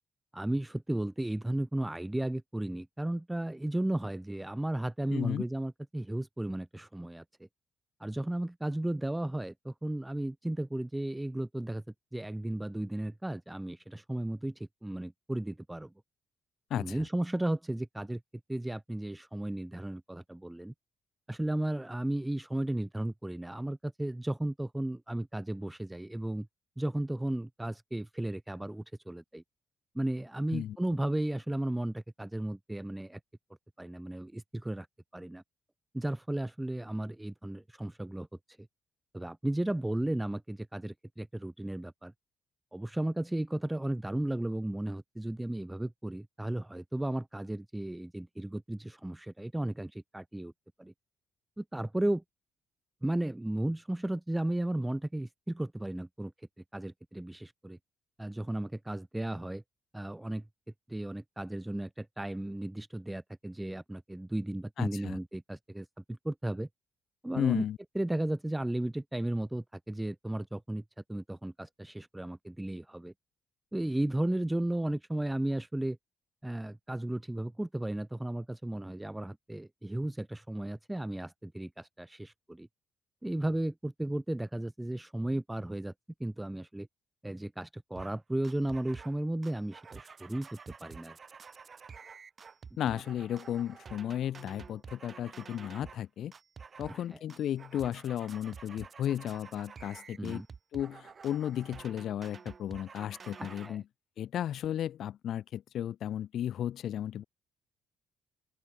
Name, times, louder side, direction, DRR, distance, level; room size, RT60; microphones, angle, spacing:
voice 1, 0.3-7.5 8.0-11.8 12.1-15.9 16.7-18.2 18.5-20.7 21.3-26.5 26.8-29.4 29.9-33.2 33.8-34.9 35.1-35.4 35.9-38.3 38.6-38.7 39.1-42.1 42.7-50.5 50.8-50.9 51.6-52.2 53.0-56.3 56.7-57.8 58.2-59.6 59.9-60.4 60.9-66.7 67.2-67.6 68.0-70.8 71.1-73.1 73.7-76.0 76.4-82.7 83.2-85.9 86.2-86.9 87.2-91.2 96.9-97.0 100.2-100.5 103.4-103.8, right 1 dB, 10° right, 0.4 m, -34 dB
voice 2, 5.1-5.4 16.7-17.0 30.5-30.8 64.8-65.2 67.3-67.8 92.8-96.3 96.8-100.4 100.7-103.8 104.2-107.2, left 10 dB, 70° left, 0.9 m, -34 dB
sound 1, 88.0-88.2 88.4-89.2 89.4-96.0 96.3-97.0 97.3-103.7, right 5 dB, 40° right, 5.0 m, -50 dB
open air
cardioid pair, 90°, 0 cm